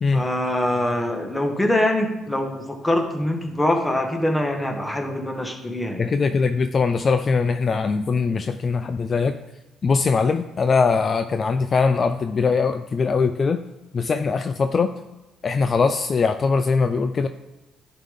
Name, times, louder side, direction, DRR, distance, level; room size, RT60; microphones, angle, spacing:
voice 1, 0.1-6.1, left 1 dB, 15° left, 3 dB, 1.4 m, -24 dB
voice 2, 6.0-9.4 9.8-13.6 13.9-14.9 15.4-17.3, left 4 dB, 45° left, 9 dB, 0.3 m, -21 dB
10.5 x 3.8 x 3.6 m, 1.0 s
supercardioid pair, 60°, 0 cm